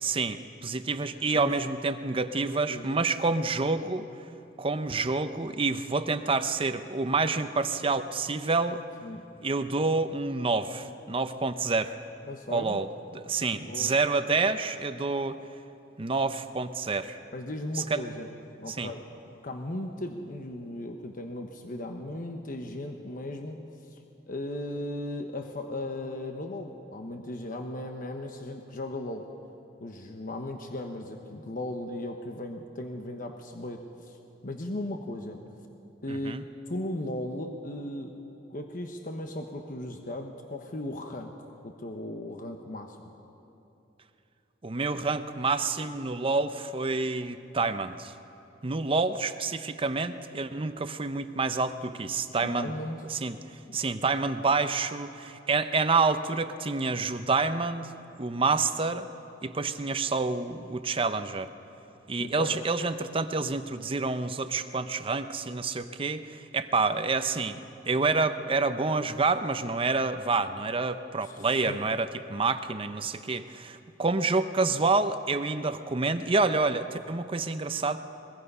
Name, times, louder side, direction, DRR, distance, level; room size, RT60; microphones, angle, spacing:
voice 1, 0.0-4.1 4.6-8.8 9.4-12.0 12.5-12.9 13.1-15.4 16.0-17.2 17.9-18.1 18.7-18.9 36.1-36.4 44.6-48.1 48.6-52.7 53.1-53.4 53.7-57.9 58.2-59.1 59.4-61.5 62.1-78.0, right 3 dB, 30° right, 10 dB, 0.6 m, -28 dB
voice 2, 2.5-3.0 9.0-9.3 12.3-12.8 13.5-13.9 17.3-18.3 18.6-19.1 19.4-23.6 23.9-24.0 24.3-29.3 29.8-34.2 34.4-35.4 36.0-36.4 36.7-38.1 38.5-41.3 41.6-43.0 52.4-53.0 53.7-53.8 62.2-62.6 71.2-71.4 71.7-71.9, left 1 dB, 45° left, 4 dB, 1.1 m, -37 dB
22.0 x 22.0 x 5.5 m, 2.9 s
head